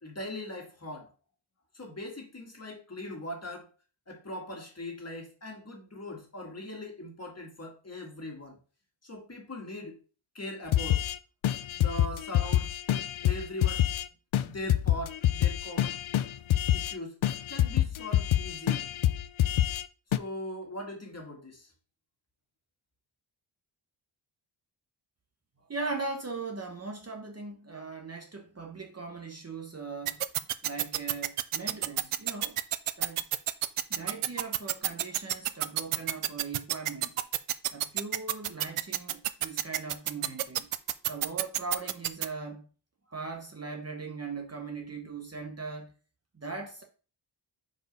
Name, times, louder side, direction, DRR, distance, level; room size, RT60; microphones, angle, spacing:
voice 1, 0.0-1.1 1.7-3.7 4.1-8.6 9.0-10.0 10.3-11.0 11.8-13.9 14.4-16.0 16.7-17.2 17.5-18.9 20.1-21.7, left 1 dB, 30° left, 1.9 m, -40 dB
sound 1, 10.7-11.2 11.4-14.1 14.3-14.4 14.7-16.9 17.2-19.8 20.1-20.2, left 12 dB, 75° left, 0.6 m, -26 dB
voice 2, 25.7-30.2 30.6-32.6 33.0-33.2 33.9-37.2 37.7-40.7 41.1-42.7 43.1-45.9 46.4-46.8, right 4 dB, 30° right, 1.0 m, -39 dB
sound 2, 30.1-42.3, right 13 dB, 85° right, 0.6 m, -28 dB
4.8 x 4.6 x 5.3 m
wide cardioid pair, 120°, 49 cm